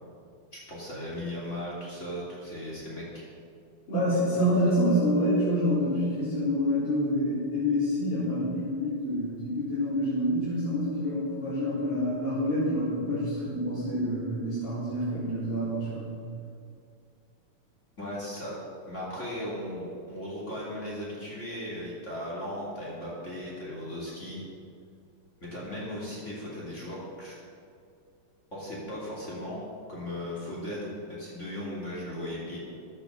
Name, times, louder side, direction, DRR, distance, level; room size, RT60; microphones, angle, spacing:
voice 1, 0.5-3.3 18.0-18.6 18.9-24.4 25.4-27.3 28.5-29.6 29.9-32.6, left 1 dB, 30° left, -6 dB, 3.3 m, -37 dB
voice 2, 3.9-16.1, equal, 85° left, -9 dB, 4.7 m, -27 dB
14.0 x 10.5 x 5.7 m, 2.4 s
omnidirectional pair, 2.4 m